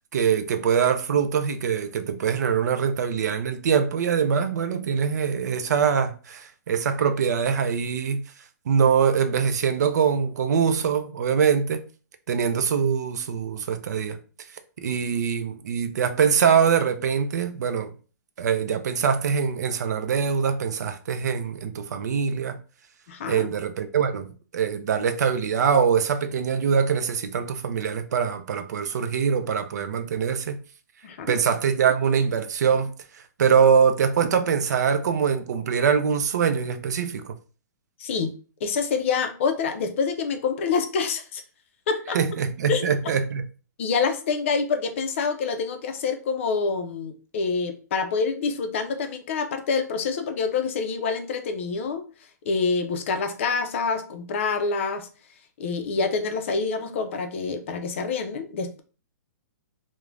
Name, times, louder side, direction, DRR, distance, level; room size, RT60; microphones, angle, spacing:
voice 1, 0.1-8.2 8.7-11.8 12.3-14.2 14.8-17.9 18.4-22.6 23.3-24.3 24.5-30.6 31.3-32.9 33.4-37.3 42.1-43.5, right 7 dB, 65° right, 0.4 m, -23 dB
voice 2, 23.1-23.5 31.0-31.4 38.0-38.3 38.6-41.4 41.9-42.2 42.7-42.8 43.8-52.1 52.4-55.1 55.6-58.8, left 5 dB, 45° left, 0.4 m, -26 dB
2.4 x 2.1 x 3.1 m
hypercardioid pair, 165°, 10 cm